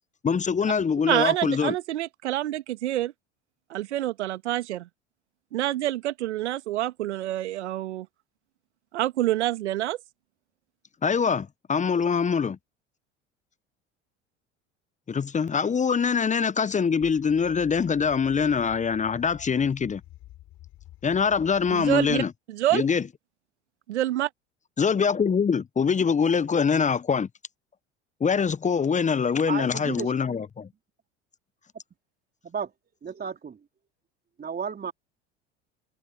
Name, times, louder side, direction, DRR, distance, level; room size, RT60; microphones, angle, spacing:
voice 1, 0.2-1.7 11.0-12.6 15.1-20.0 21.0-22.3 22.7-23.0 24.8-27.3 28.2-30.7, left 6 dB, 20° left, 1.0 m, -24 dB
voice 2, 1.1-3.1 3.7-4.9 5.5-8.1 8.9-10.0 21.7-22.2 22.5-22.9 23.9-24.3, right 14 dB, 75° right, 1.8 m, -27 dB
sound 1, 17.0-22.3, left 15 dB, 50° left, 7.7 m, -49 dB
voice 3, 29.5-30.4 32.4-32.7 33.0-33.6 34.4-34.9, right 6 dB, 25° right, 3.4 m, -33 dB
figure-of-eight pair, 70°, 35 cm